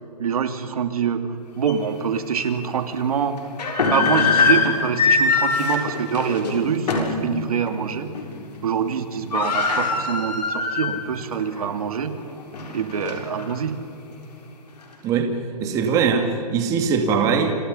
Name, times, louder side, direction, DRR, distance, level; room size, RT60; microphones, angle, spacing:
voice 1, 0.2-1.2 1.6-3.4 3.9-8.1 8.6-12.1 12.7-13.7, right 7 dB, 65° right, 7 dB, 2.7 m, -25 dB
sound 1, 1.7-1.8 2.3-2.5 3.4-7.2 7.6-7.8 8.1-8.6 8.8-8.9 9.1-11.1 11.5-11.6 12.2-13.5, left 4 dB, 85° left, 7.1 m, -22 dB
voice 2, 15.6-17.6, right 6 dB, 15° right, 4 dB, 2.4 m, -21 dB
30.0 x 27.5 x 5.6 m, 2.4 s
hypercardioid pair, 165°, 20 cm